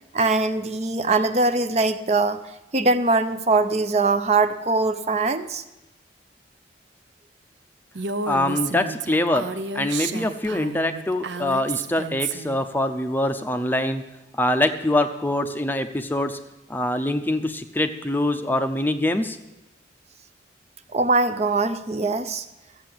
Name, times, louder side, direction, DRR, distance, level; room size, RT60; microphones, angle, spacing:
voice 1, 0.1-2.4 2.7-5.6 20.9-22.4, right 3 dB, 35° right, 10 dB, 0.5 m, -22 dB
Female speech woman speaking, 7.9-12.6, right 5 dB, 75° right, 0.6 m, -31 dB
voice 2, 8.3-9.4 9.7-14.0 14.4-16.4 16.7-19.4, left 1 dB, 10° left, 7 dB, 0.5 m, -24 dB
13.5 x 8.0 x 7.7 m, 0.96 s
head